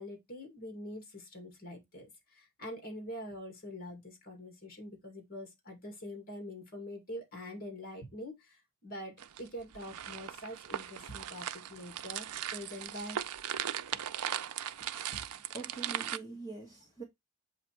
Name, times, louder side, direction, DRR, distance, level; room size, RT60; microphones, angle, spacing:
voice 1, 0.0-13.2 13.5-13.6 13.9-14.0 15.1-15.2 16.2-16.4, equal, 40° left, 2.1 m, -45 dB
sound 1, 9.2-16.2, right 10 dB, 90° right, 0.5 m, -38 dB
voice 2, 14.7-15.0 15.5-17.0, right 3 dB, 15° left, 1.3 m, -45 dB
7.7 x 2.9 x 4.5 m
head